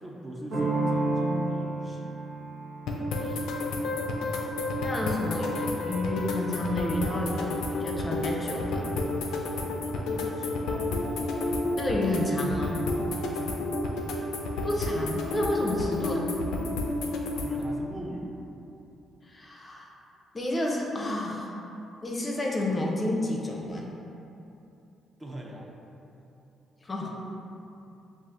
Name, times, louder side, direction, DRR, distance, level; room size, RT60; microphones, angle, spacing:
voice 1, 0.0-2.2 9.8-11.2 13.2-13.7 17.4-18.4 25.2-25.7 27.2-27.3, equal, 25° right, -2 dB, 0.5 m, -41 dB
sound 1, 0.5-6.1, right 2 dB, 65° right, 0.9 m, -32 dB
sound 2, 2.9-17.6, left 2 dB, 85° left, 0.4 m, -31 dB
voice 2, 4.8-7.5 7.8-8.8 11.7-12.8 14.6-16.3 19.3-19.9 20.3-21.5 22.0-23.9 26.8-27.1, left 1 dB, 30° left, -2 dB, 0.5 m, -30 dB
5.6 x 2.4 x 2.5 m, 2.8 s
cardioid pair, 90°, 0 cm